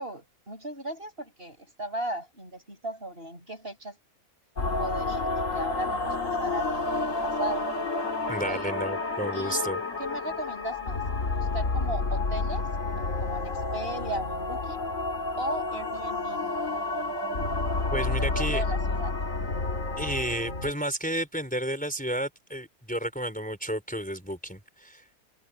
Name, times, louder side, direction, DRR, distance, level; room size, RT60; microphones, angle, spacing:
voice 1, 0.0-4.0 4.8-7.7 8.5-8.7 9.3-9.7 10.0-11.1 11.3-12.7 13.0-14.9 15.4-16.5 18.1-19.2, right 1 dB, 35° right, 7.9 m, -37 dB
sound 1, 4.6-20.7, left 3 dB, 55° left, 2.6 m, -30 dB
voice 2, 8.3-9.8 17.9-18.6 20.0-25.0, right 1 dB, 5° left, 4.6 m, -31 dB
open air
omnidirectional pair, 1.6 m